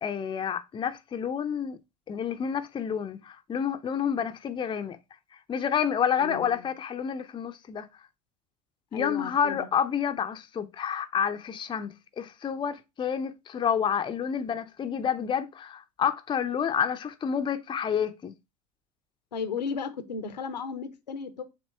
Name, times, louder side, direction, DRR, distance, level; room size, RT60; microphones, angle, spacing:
voice 1, 0.0-1.8 2.1-5.0 5.5-7.9 8.9-18.3, left 8 dB, 20° left, 0.6 m, -29 dB
voice 2, 6.2-6.7 8.9-9.7 19.3-21.4, left 6 dB, 85° left, 0.8 m, -35 dB
7.3 x 2.9 x 4.4 m
figure-of-eight pair, 75°, 21 cm